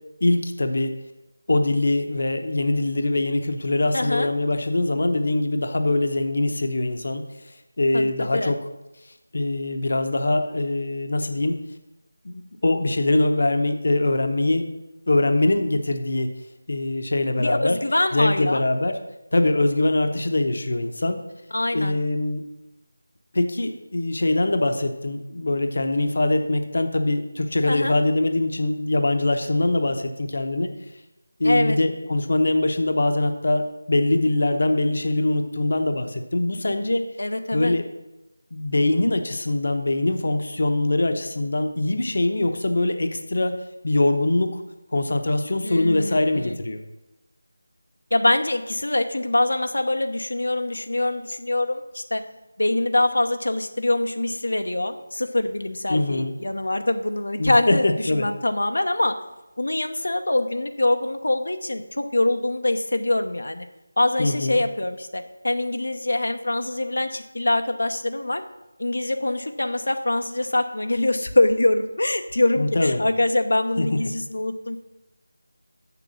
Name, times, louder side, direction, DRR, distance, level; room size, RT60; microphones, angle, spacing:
voice 1, 0.2-0.9 1.5-7.2 7.8-8.6 9.3-11.6 12.2-14.7 15.1-16.3 16.7-17.8 18.1-19.0 19.3-21.2 21.7-22.4 23.3-30.7 31.4-37.0 37.5-37.8 38.5-44.6 44.9-46.8 55.9-56.3 57.4-58.3 64.2-64.6 72.6-73.0 73.8-74.0, left 2 dB, 50° left, 7 dB, 0.8 m, -23 dB
voice 2, 3.9-4.3 7.9-8.5 17.4-18.6 21.5-21.9 27.7-27.9 31.4-31.8 37.2-37.7 45.6-46.5 48.1-52.2 52.6-57.8 58.1-59.1 59.6-63.7 64.0-68.4 68.8-74.8, left 2 dB, 85° left, 7 dB, 0.8 m, -24 dB
7.0 x 6.8 x 6.2 m, 0.98 s
figure-of-eight pair, 175°, 0 cm